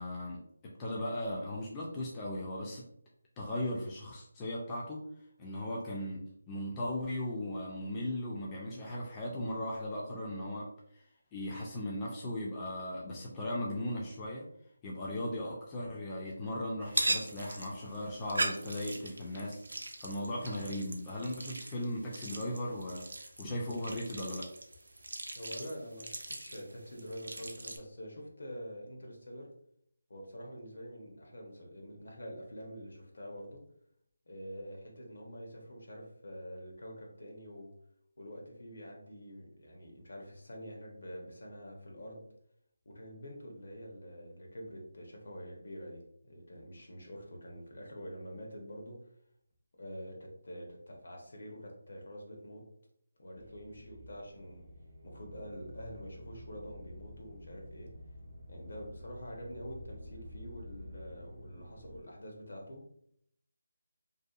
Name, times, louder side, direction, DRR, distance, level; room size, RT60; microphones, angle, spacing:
voice 1, 0.0-2.8 3.4-5.1 5.4-11.0 11.3-14.5 14.8-24.5, left 1 dB, 15° left, -4 dB, 0.3 m, -37 dB
sound 1, 16.8-27.8, right 2 dB, 80° right, 0.4 m, -39 dB
voice 2, 25.3-29.5 30.1-33.6 34.3-37.7 38.2-42.3 42.8-49.0 49.8-52.6 53.2-54.6 55.0-57.9 58.5-63.0, equal, 70° left, 0 dB, 0.8 m, -46 dB
sound 2, 53.3-62.0, left 1 dB, 60° right, 0.8 m, -50 dB
2.6 x 2.2 x 2.4 m, 0.70 s
figure-of-eight pair, 170°, 0 cm